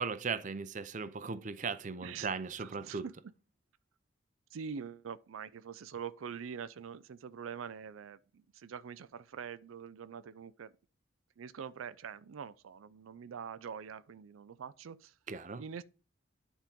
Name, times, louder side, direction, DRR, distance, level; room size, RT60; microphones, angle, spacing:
voice 1, 0.0-3.0 15.3-15.6, right 5 dB, 40° right, 0.6 m, -37 dB
voice 2, 2.6-3.1 4.5-10.7 11.4-15.1 15.6-15.8, right 7 dB, 90° right, 0.4 m, -44 dB
10.0 x 3.7 x 5.2 m
head